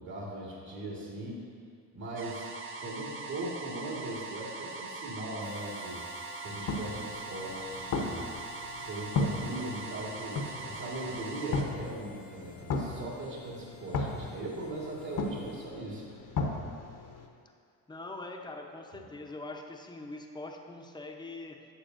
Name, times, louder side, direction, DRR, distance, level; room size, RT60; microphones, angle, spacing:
voice 1, 0.0-1.4 1.9-2.5 2.8-6.0 6.4-8.3 8.8-16.0, right 1 dB, 50° right, -4 dB, 1.8 m, -39 dB
sound 1, 2.2-11.6, right 3 dB, 30° right, 1.0 m, -42 dB
Harmonica, 5.4-15.7, left 2 dB, 80° left, 1.6 m, -54 dB
sound 2, 6.5-17.3, left 3 dB, 50° left, 1.1 m, -36 dB
voice 2, 17.9-21.6, left 2 dB, 10° left, 2 dB, 0.8 m, -43 dB
11.5 x 6.8 x 2.6 m, 2.2 s
supercardioid pair, 75°, 43 cm